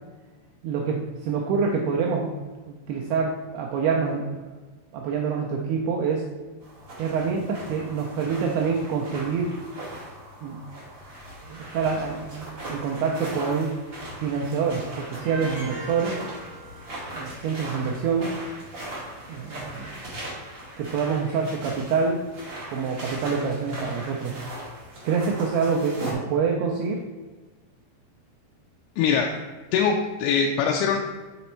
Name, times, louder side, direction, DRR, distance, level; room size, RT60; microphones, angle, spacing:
voice 1, 0.6-2.3 2.7-4.5 4.9-6.3 7.0-9.6 10.4-10.6 11.4-13.8 14.2-16.2 17.1-18.4 19.3-19.9 20.8-22.2 22.7-24.4 25.0-27.1, right 5 dB, 80° right, 0 dB, 2.3 m, -26 dB
sound 1, 6.6-26.1, right 1 dB, 35° right, 1.6 m, -39 dB
sound 2, 15.2-17.3, right 1 dB, 55° right, 2.4 m, -39 dB
voice 2, 29.0-29.3 29.7-31.0, left 6 dB, 90° left, 2 dB, 2.9 m, -22 dB
6.8 x 4.1 x 4.3 m, 1.3 s
omnidirectional pair, 5.1 m